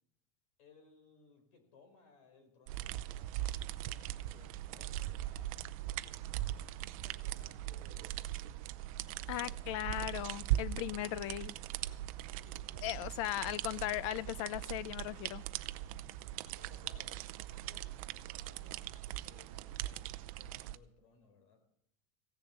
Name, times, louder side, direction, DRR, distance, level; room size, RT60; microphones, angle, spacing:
voice 1, 0.6-5.8 6.4-8.5 9.2-10.1 12.3-13.6 16.5-21.6, left 4 dB, 85° left, 5 dB, 4.4 m, -63 dB
sound 1, 2.7-20.8, right 14 dB, 70° right, 0.6 m, -40 dB
voice 2, 9.3-11.5 12.8-15.4, left 14 dB, 60° left, 18 dB, 0.6 m, -37 dB
16.0 x 7.0 x 8.1 m, 0.70 s
cardioid pair, 175°, 18 cm